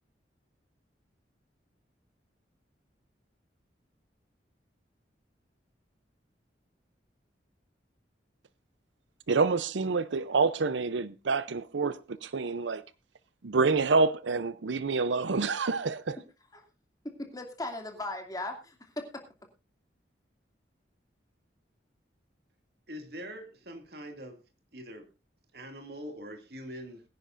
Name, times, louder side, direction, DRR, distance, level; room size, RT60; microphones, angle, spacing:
voice 1, 9.3-12.8 13.4-16.2, right 4 dB, 85° right, 0.6 m, -27 dB
voice 2, 17.0-19.1, left 2 dB, 20° left, 2.5 m, -38 dB
voice 3, 22.9-24.4 24.7-25.1 25.5-27.0, equal, 60° right, 2.4 m, -43 dB
22.0 x 10.0 x 2.6 m
head